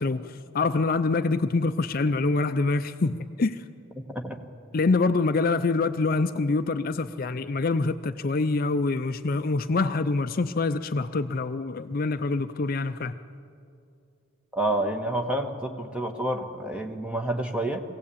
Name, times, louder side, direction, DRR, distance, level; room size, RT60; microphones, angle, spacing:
voice 1, 0.0-3.6 4.7-13.1, left 3 dB, 45° left, 10 dB, 0.5 m, -25 dB
voice 2, 14.6-17.8, right 1 dB, 5° right, 3 dB, 1.4 m, -28 dB
22.5 x 17.0 x 8.5 m, 2.5 s
head